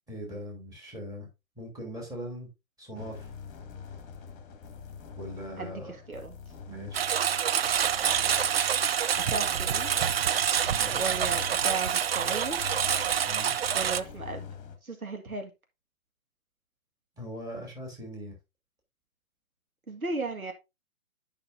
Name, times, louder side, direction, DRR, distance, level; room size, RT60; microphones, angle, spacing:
voice 1, 0.1-1.3 1.6-2.5 2.8-3.3 5.2-6.0 6.6-7.0 10.7-11.0 13.2-13.5 17.2-18.4, equal, 10° right, -2 dB, 3.1 m, -40 dB
sound 1, 2.9-14.8, left 6 dB, 20° left, 1.5 m, -44 dB
voice 2, 5.6-6.3 7.8-7.9 9.1-9.9 11.0-12.6 13.7-14.5 14.8-15.5 19.9-20.5, right 3 dB, 85° right, 4 dB, 2.0 m, -35 dB
Engine, 6.9-14.0, right 8 dB, 45° right, 0.5 m, -27 dB
11.0 x 5.6 x 2.6 m, 0.24 s
figure-of-eight pair, 125°, 42 cm